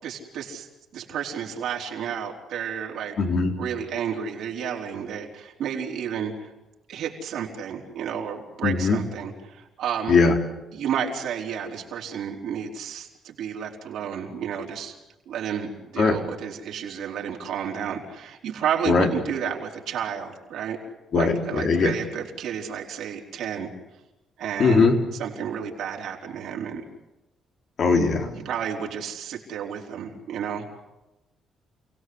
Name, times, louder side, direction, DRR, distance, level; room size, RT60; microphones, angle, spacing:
voice 1, 0.0-0.7 0.9-3.2 3.6-6.5 6.9-10.2 10.7-14.9 15.3-20.8 21.1-23.7 24.4-24.9 25.2-26.8 27.9-28.0 28.3-30.7, right 8 dB, 80° right, 0 dB, 4.6 m, -31 dB
voice 2, 3.2-3.5 8.6-9.0 10.1-10.4 16.0-16.2 18.9-19.1 21.1-22.0 24.6-25.0 27.8-28.3, left 4 dB, 55° left, 3 dB, 3.7 m, -20 dB
29.5 x 17.5 x 8.2 m, 0.99 s
cardioid pair, 90°, 0 cm